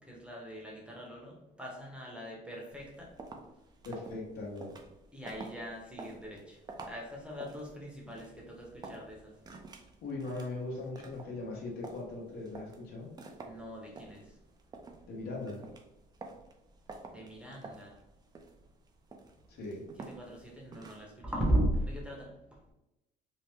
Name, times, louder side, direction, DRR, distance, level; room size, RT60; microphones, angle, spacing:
voice 1, 0.1-3.1 5.1-6.6 6.9-9.3 13.4-14.2 17.1-17.9 20.0-22.3, right 1 dB, 5° right, -2 dB, 0.7 m, -37 dB
sound 1, 2.7-21.2, right 3 dB, 25° right, 0.4 m, -50 dB
voice 2, 3.8-4.7 10.0-13.1 15.1-15.6 19.5-19.8, left 2 dB, 70° left, -2 dB, 1.0 m, -39 dB
2.8 x 2.0 x 3.3 m, 0.94 s
cardioid pair, 110°, 17 cm